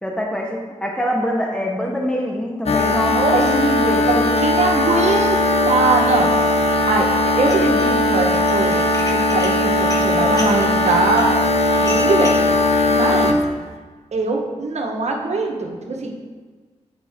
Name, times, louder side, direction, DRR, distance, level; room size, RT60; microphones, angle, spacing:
voice 1, 0.0-4.1, equal, 10° left, 0 dB, 1.0 m, -24 dB
sound 1, 2.7-13.4, left 2 dB, 60° left, 0.8 m, -18 dB
voice 2, 3.1-3.4 4.0-6.3 6.6-8.8 9.1-11.4 11.8-12.4 12.9-13.4 14.1-16.1, right 3 dB, 65° right, 1 dB, 1.2 m, -21 dB
Dishes pots and pans, 7.3-7.9 8.3-12.5, left 2 dB, 30° left, 1.6 m, -33 dB
8.4 x 5.3 x 3.6 m, 1.4 s
cardioid pair, 55°, 12 cm